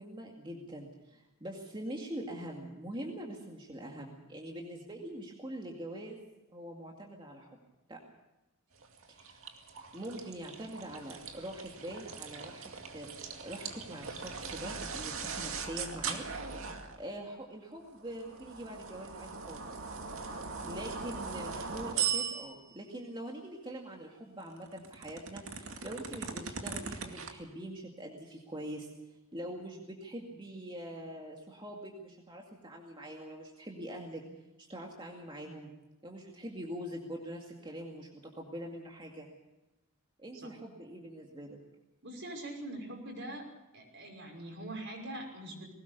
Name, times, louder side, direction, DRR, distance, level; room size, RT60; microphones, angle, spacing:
voice 1, 0.0-6.2 6.5-7.6 7.9-8.0 9.1-9.4 9.9-16.3 17.0-19.8 20.2-20.3 20.6-28.9 29.3-34.2 34.6-35.7 36.0-39.3 40.2-41.6, right 1 dB, 25° right, 0 dB, 2.2 m, -44 dB
sound 1, 8.8-17.1 18.0-22.8 24.4-27.3, right 6 dB, 75° right, 2.3 m, -40 dB
voice 2, 42.0-43.5 43.7-45.7, right 1 dB, 60° right, 2 dB, 5.8 m, -43 dB
20.5 x 18.5 x 6.8 m, 1.0 s
head